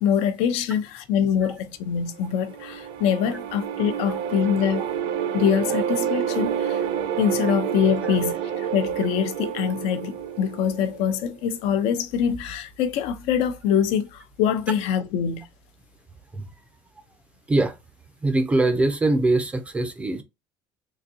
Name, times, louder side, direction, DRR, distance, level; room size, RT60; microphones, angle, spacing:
voice 1, 0.0-4.9 5.3-6.8 7.2-15.4, left 8 dB, 75° left, 0.6 m, -24 dB
sound 1, 2.2-11.3, right 9 dB, 70° right, 0.6 m, -29 dB
voice 2, 18.2-20.2, right 2 dB, 10° right, 0.4 m, -22 dB
3.9 x 2.6 x 2.7 m
cardioid pair, 175°, 10 cm